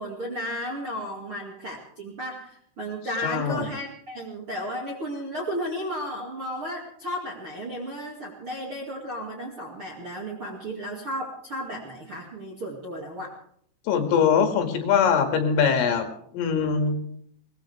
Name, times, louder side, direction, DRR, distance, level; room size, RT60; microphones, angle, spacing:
voice 1, 0.0-13.4 15.7-15.9, equal, 40° right, -2 dB, 2.0 m, -34 dB
voice 2, 3.2-3.7 13.9-17.0, left 6 dB, 75° left, 5 dB, 4.6 m, -22 dB
21.5 x 19.5 x 3.4 m, 0.65 s
omnidirectional pair, 5.9 m